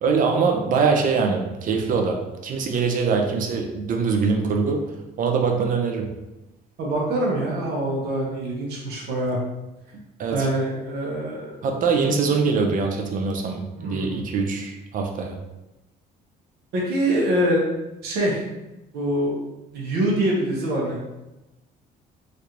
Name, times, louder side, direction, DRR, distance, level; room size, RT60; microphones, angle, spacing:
voice 1, 0.0-4.8 5.2-6.1 10.2-10.5 11.6-15.4, right 5 dB, 50° right, 2 dB, 0.6 m, -23 dB
voice 2, 6.8-9.4 10.3-11.5 13.8-14.2 16.7-17.6 18.0-18.4 18.9-19.3 19.7-21.1, right 1 dB, 75° right, -3 dB, 0.9 m, -24 dB
3.2 x 2.5 x 2.9 m, 0.98 s
cardioid pair, 110°, 17 cm